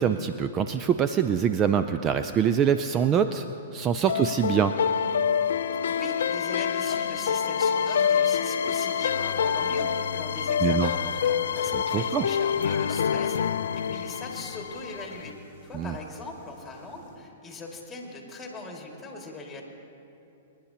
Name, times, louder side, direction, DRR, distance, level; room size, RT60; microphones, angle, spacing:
voice 1, 0.0-3.4 3.7-4.7 10.6-10.9 11.7-12.3 15.7-15.9, right 8 dB, 25° right, 10 dB, 0.4 m, -24 dB
sound 1, 4.1-15.3, left 7 dB, 75° left, 0.4 m, -26 dB
voice 2, 5.7-13.4 13.7-15.3 15.6-19.6, left 3 dB, 15° left, 0 dB, 2.2 m, -40 dB
sound 2, 9.0-17.2, left 2 dB, 55° right, 2.5 m, -46 dB
26.0 x 10.5 x 2.9 m, 2.8 s
hypercardioid pair, 125°, 0 cm